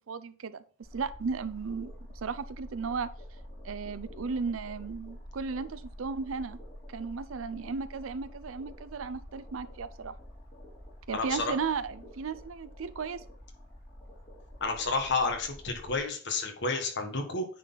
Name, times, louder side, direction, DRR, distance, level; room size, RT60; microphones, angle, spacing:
voice 1, 0.1-0.6 0.9-1.9 2.2-3.1 3.6-6.6 6.9-10.1 11.1-13.2, right 5 dB, 90° right, 14 dB, 0.5 m, -35 dB
sound 1, 0.8-16.0, equal, 35° left, 2.9 m, -48 dB
voice 2, 11.1-11.5 14.6-17.4, left 3 dB, 60° left, 4 dB, 1.5 m, -30 dB
9.3 x 4.1 x 4.0 m, 0.43 s
head